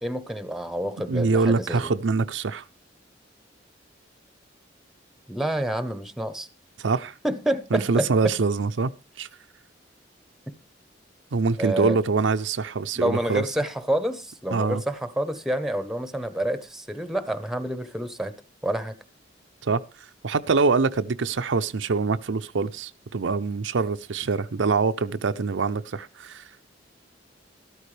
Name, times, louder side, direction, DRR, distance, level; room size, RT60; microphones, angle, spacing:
voice 1, 0.0-1.9 5.3-6.5 7.2-8.1 11.6-12.0 13.0-18.3 18.6-18.9, right 1 dB, ahead, 0.9 m, -28 dB
voice 2, 1.1-2.6 6.8-7.1 7.7-8.9 9.2-9.3 11.3-13.4 14.5-14.8 19.6-19.8 20.2-26.4, right 4 dB, 80° right, 0.6 m, -24 dB
13.5 x 12.5 x 3.3 m
head